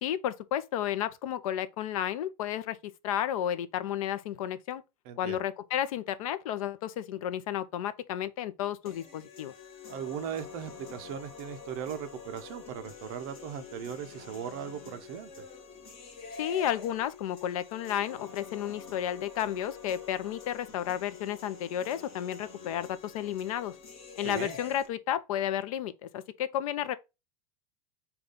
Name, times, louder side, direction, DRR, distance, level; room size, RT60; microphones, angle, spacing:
voice 1, 0.0-2.8 3.0-4.8 5.2-9.5 16.4-23.7 24.2-27.0, left 11 dB, 65° left, 0.5 m, -32 dB
voice 2, 5.1-5.4 9.9-15.5 24.2-24.6, right 8 dB, 35° right, 0.5 m, -38 dB
sound 1, 8.9-24.9, left 5 dB, 30° left, 1.4 m, -47 dB
5.0 x 2.3 x 3.7 m
supercardioid pair, 170°, 19 cm